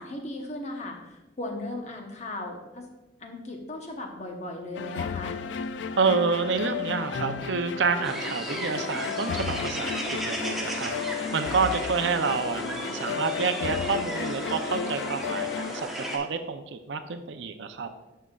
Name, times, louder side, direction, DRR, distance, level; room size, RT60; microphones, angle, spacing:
voice 1, 0.0-2.8 3.2-5.3, left 1 dB, 40° left, 2 dB, 1.0 m, -37 dB
sound 1, 4.8-15.8, left 6 dB, 75° left, 0.3 m, -33 dB
voice 2, 6.0-10.9 11.3-17.9, right 5 dB, 80° right, 8 dB, 0.5 m, -28 dB
sound 2, 8.0-16.2, equal, ahead, 1.0 m, -35 dB
11.0 x 5.6 x 2.4 m, 1.0 s
head